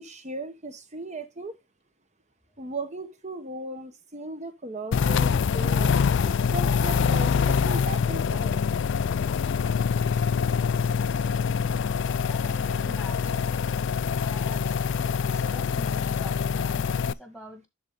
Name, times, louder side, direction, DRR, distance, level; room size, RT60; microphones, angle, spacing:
voice 1, 0.0-1.6 2.6-5.9 6.2-8.6, right 2 dB, 30° right, 1.1 m, -37 dB
sound 1, 4.9-17.1, left 6 dB, 55° left, 0.3 m, -25 dB
voice 2, 12.1-13.6 14.2-17.7, left 1 dB, 5° right, 1.8 m, -45 dB
11.5 x 3.9 x 3.7 m
head